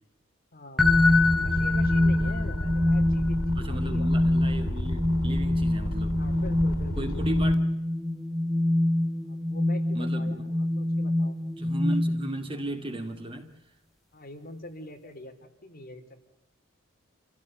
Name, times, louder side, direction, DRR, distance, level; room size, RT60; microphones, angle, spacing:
voice 1, 0.5-4.1 5.9-7.3 9.3-11.3 14.1-15.3 15.6-16.2, left 1 dB, 45° left, 4.0 m, -44 dB
sound 1, 0.8-7.6, left 1 dB, 85° left, 3.3 m, -31 dB
sound 2, 0.8-12.5, left 1 dB, ahead, 1.1 m, -25 dB
voice 2, 2.2-2.5 3.6-6.2 7.0-7.7 9.9-10.4 11.6-13.6, right 1 dB, 25° right, 2.2 m, -36 dB
28.5 x 16.0 x 8.5 m
head